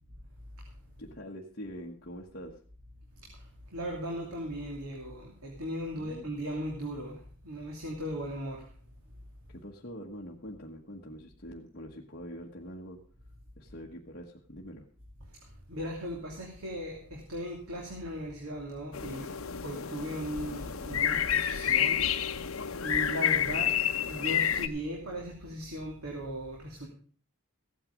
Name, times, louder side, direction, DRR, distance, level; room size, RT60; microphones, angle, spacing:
voice 1, 1.0-2.6 5.9-6.3 9.5-13.0 13.6-14.9, equal, 45° left, -3 dB, 1.4 m, -44 dB
voice 2, 3.2-8.7 15.2-19.3 19.6-22.1 22.4-23.8 24.1-26.9, equal, 90° right, 0 dB, 2.8 m, -38 dB
sound 1, 18.9-24.7, left 9 dB, 70° left, 0.9 m, -29 dB
15.0 x 9.3 x 5.2 m, 0.43 s
head